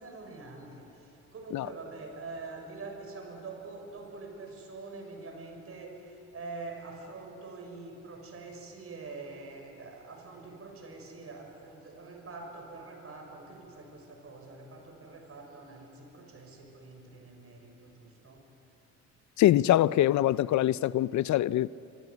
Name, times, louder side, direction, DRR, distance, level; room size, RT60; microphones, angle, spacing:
voice 1, 0.0-18.5, right 3 dB, 50° right, 6.2 m, -45 dB
voice 2, 19.4-21.7, left 13 dB, 70° left, 0.6 m, -24 dB
24.5 x 24.0 x 9.6 m
cardioid pair, 90°, 30 cm